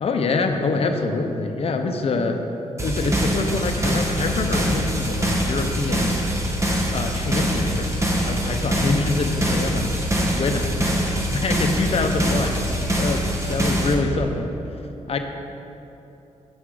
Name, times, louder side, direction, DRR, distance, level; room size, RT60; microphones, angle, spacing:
voice 1, 0.0-2.4 2.8-6.1 6.9-10.7 11.0-12.6 13.0-14.5 15.1-15.2, left 3 dB, 55° left, 5 dB, 0.7 m, -25 dB
sound 1, 2.8-13.9, equal, 25° right, 1.1 m, -23 dB
7.1 x 6.0 x 4.8 m, 2.9 s
cardioid pair, 95°, 12 cm